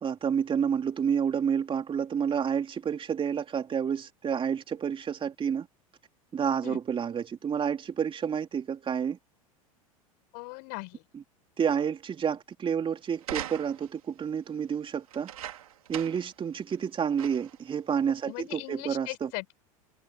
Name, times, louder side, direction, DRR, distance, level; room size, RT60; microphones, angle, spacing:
voice 1, 0.0-5.7 6.3-9.2 11.1-11.2 11.6-15.3 15.9-19.3, right 7 dB, 30° right, 3.4 m, -29 dB
voice 2, 10.3-11.0 18.3-19.5, left 35 dB, 60° left, 6.3 m, -39 dB
sound 1, 13.2-14.0 15.1-16.3 16.7-16.8 17.2-17.6 18.4-18.5, right 11 dB, 75° right, 3.8 m, -40 dB
hypercardioid pair, 85°, 18 cm